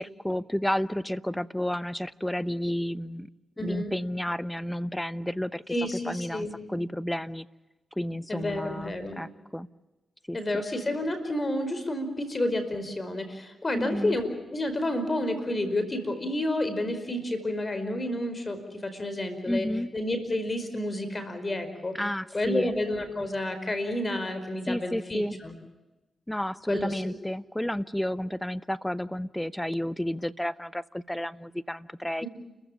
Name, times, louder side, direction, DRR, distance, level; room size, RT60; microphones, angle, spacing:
voice 1, 0.0-3.3 3.6-5.7 6.1-7.5 8.0-9.7 10.3-10.6 13.7-14.2 19.4-19.9 21.9-22.7 24.7-25.4 26.3-32.2, left 1 dB, 10° left, 16 dB, 0.9 m, -31 dB
voice 2, 3.6-3.9 5.7-6.5 8.3-9.2 10.3-22.0 22.3-25.5 26.7-27.2, left 1 dB, 35° left, 9 dB, 4.9 m, -30 dB
29.5 x 15.0 x 8.7 m, 1.1 s
supercardioid pair, 50°, 0 cm